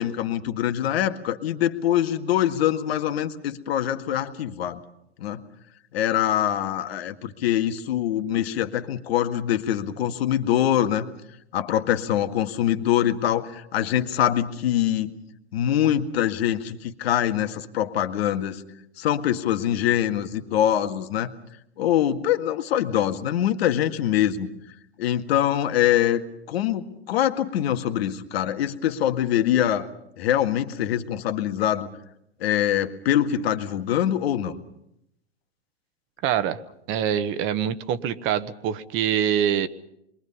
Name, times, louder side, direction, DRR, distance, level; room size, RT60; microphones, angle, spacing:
voice 1, 0.0-4.8 5.2-5.4 5.9-11.1 11.5-15.1 15.5-18.6 19.0-21.3 21.8-24.5 25.0-29.9 30.2-31.9 32.4-34.6, left 11 dB, 65° left, 7 dB, 1.9 m, -24 dB
voice 2, 36.2-36.6 36.9-39.7, right 9 dB, 35° right, 13 dB, 1.3 m, -24 dB
28.0 x 23.0 x 5.5 m, 0.78 s
hypercardioid pair, 120°, 33 cm